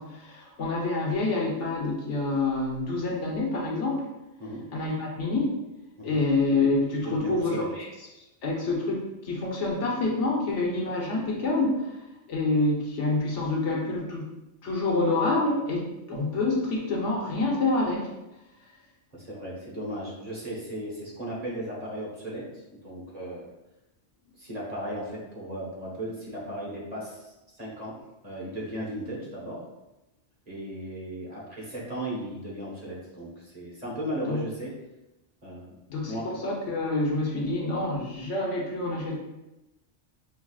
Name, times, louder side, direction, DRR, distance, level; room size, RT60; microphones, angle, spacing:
voice 1, 0.0-4.1 4.7-5.5 6.0-7.9 8.4-12.0 12.3-14.3 14.6-18.1 34.3-34.4 35.9-39.2, left 2 dB, 80° left, -2 dB, 1.3 m, -27 dB
voice 2, 7.0-7.7 19.1-23.5 24.4-28.0 28.2-29.6 30.5-34.7 35.4-35.7 36.1-36.3, right 1 dB, 35° right, -5 dB, 1.2 m, -36 dB
5.9 x 3.2 x 2.3 m, 0.96 s
omnidirectional pair, 1.2 m